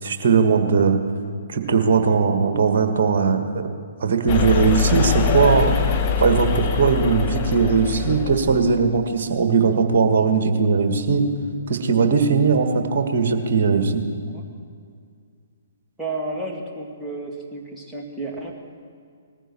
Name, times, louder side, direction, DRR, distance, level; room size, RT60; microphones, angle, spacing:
voice 1, 0.0-1.0 1.5-3.7 4.0-5.7 6.2-11.2 11.7-14.0, right 5 dB, 50° right, 6 dB, 1.6 m, -19 dB
sound 1, 4.3-8.8, left 7 dB, 35° left, 1.3 m, -23 dB
voice 2, 16.0-18.5, right 2 dB, ahead, -4 dB, 2.1 m, -31 dB
19.5 x 15.0 x 4.5 m, 2.2 s
figure-of-eight pair, 125°, 0 cm